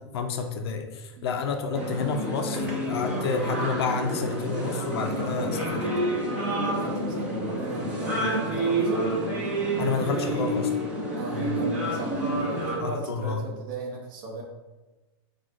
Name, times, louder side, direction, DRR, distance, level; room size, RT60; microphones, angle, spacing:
voice 1, 0.0-5.8 9.8-10.7 12.8-13.4, left 5 dB, 65° left, 5 dB, 0.4 m, -30 dB
sound 1, 1.7-12.8, right 1 dB, 10° right, 0.4 m, -28 dB
voice 2, 6.3-9.3 11.1-14.4, right 2 dB, 45° right, -3 dB, 0.8 m, -36 dB
5.8 x 2.2 x 2.4 m, 1.1 s
supercardioid pair, 170°, 14 cm